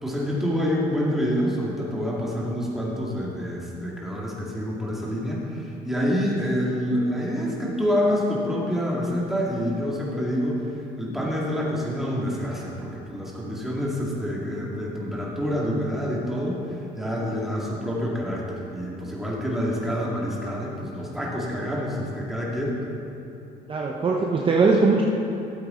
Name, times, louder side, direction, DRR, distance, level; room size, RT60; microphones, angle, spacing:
voice 1, 0.0-10.6 11.0-22.8, equal, ahead, -5 dB, 2.2 m, -27 dB
voice 2, 23.7-25.0, right 4 dB, 30° right, -1 dB, 0.8 m, -20 dB
13.0 x 8.2 x 3.8 m, 3.0 s
cardioid pair, 110°, 17 cm